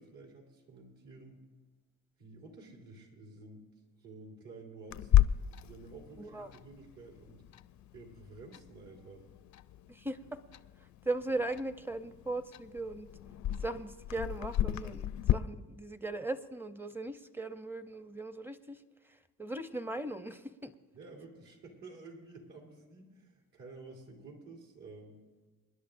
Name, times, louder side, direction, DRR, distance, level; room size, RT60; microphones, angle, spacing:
voice 1, 0.0-1.5 2.2-3.7 4.0-5.3 5.6-7.4 7.9-9.3 20.9-25.2, right 3 dB, 65° right, -1 dB, 3.5 m, -51 dB
Clock, 4.9-15.3, left 12 dB, 55° left, 0.5 m, -34 dB
voice 2, 6.2-6.5 9.9-10.4 10.8-13.1 13.6-20.7, right 2 dB, 5° right, 10 dB, 0.6 m, -38 dB
27.0 x 11.0 x 2.6 m, 1.3 s
cardioid pair, 105°, 35 cm